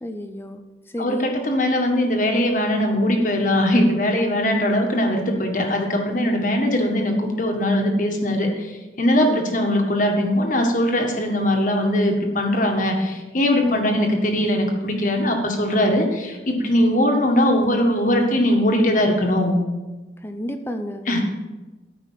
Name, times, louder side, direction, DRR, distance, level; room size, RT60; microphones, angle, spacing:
voice 1, 0.0-0.6 0.9-1.3 9.1-9.4 13.6-13.8 20.2-21.2, left 1 dB, 10° left, 6 dB, 0.6 m, -30 dB
voice 2, 1.0-19.5 21.1-21.2, left 1 dB, 45° left, 2 dB, 1.7 m, -20 dB
13.5 x 5.5 x 5.7 m, 1.1 s
head